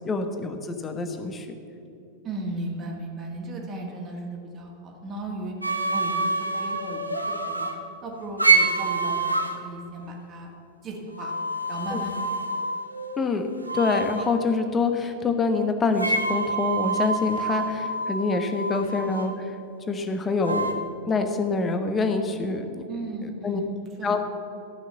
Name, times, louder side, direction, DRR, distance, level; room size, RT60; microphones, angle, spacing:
voice 1, 0.0-1.6 11.9-12.0 13.2-13.5 13.7-19.6 19.9-22.9 23.2-23.6 24.0-24.3, left 4 dB, 20° left, 6 dB, 1.1 m, -26 dB
voice 2, 2.2-5.5 5.9-10.5 10.8-11.3 11.7-12.4 22.9-24.1, right 2 dB, 30° right, 0 dB, 1.9 m, -36 dB
sound 1, 5.6-7.8 8.4-9.6 11.2-13.3 13.6-14.4 16.0-19.3 20.4-20.7, right 3 dB, 85° right, 0.9 m, -26 dB
13.0 x 6.0 x 7.1 m, 2.8 s
figure-of-eight pair, 90°, 0 cm